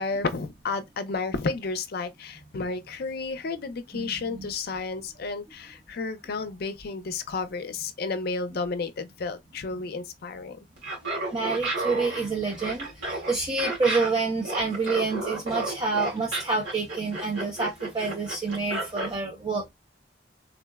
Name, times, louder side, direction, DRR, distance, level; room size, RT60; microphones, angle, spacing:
voice 1, 0.0-10.6, left 4 dB, 55° left, 0.5 m, -32 dB
voice 2, 3.9-4.5 11.3-19.6, right 3 dB, 20° right, 0.6 m, -28 dB
Laughter, 10.8-19.1, right 2 dB, 80° right, 2.1 m, -32 dB
3.6 x 2.0 x 2.3 m
head